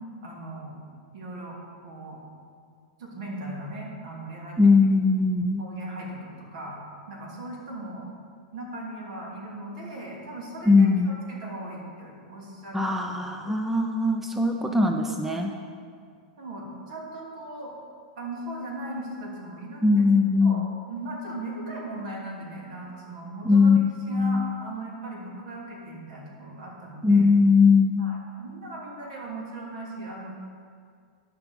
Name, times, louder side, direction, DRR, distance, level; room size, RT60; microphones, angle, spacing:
voice 1, 0.2-0.7 1.1-1.6 1.8-2.2 3.0-4.6 5.6-6.8 7.1-8.1 8.5-12.8 13.1-13.6 14.5-14.6 15.3-15.4 16.4-17.7 18.2-20.0 20.4-23.7 24.1-27.2 28.0-30.3, right 1 dB, 65° right, -2 dB, 2.8 m, -38 dB
voice 2, 4.6-5.6 10.7-11.2 12.7-15.5 19.8-20.7 23.4-23.8 24.1-24.4 27.0-28.0, left 4 dB, 5° right, 3 dB, 0.5 m, -20 dB
11.0 x 5.8 x 5.3 m, 2.1 s
hypercardioid pair, 125°, 4 cm